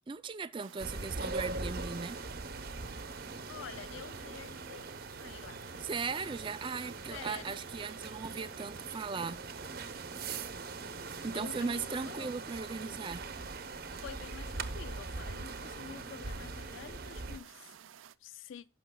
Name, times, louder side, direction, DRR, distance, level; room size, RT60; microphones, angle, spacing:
voice 1, 0.1-2.2 5.8-9.6 11.2-13.3, right 5 dB, 25° right, 0.4 m, -38 dB
sound 1, 0.6-18.1, right 9 dB, 90° right, 0.5 m, -53 dB
sound 2, 0.8-17.4, right 3 dB, 50° right, 0.8 m, -42 dB
voice 2, 3.5-4.9 5.2-5.6 7.1-7.6 11.3-12.3 14.0-17.7 18.2-18.7, left 7 dB, 80° left, 0.4 m, -48 dB
16.0 x 6.0 x 2.2 m
head